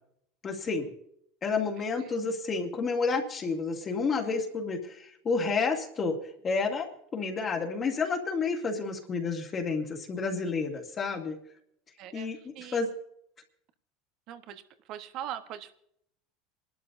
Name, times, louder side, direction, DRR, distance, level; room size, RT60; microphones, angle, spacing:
voice 1, 0.4-0.9 1.4-6.2 6.4-11.4 12.1-12.9, left 4 dB, 30° left, 0 dB, 2.1 m, -30 dB
voice 2, 12.0-12.8 14.3-14.6 14.9-15.7, right 11 dB, 55° right, 9 dB, 1.3 m, -41 dB
27.5 x 12.0 x 2.7 m, 0.71 s
supercardioid pair, 105°, 0 cm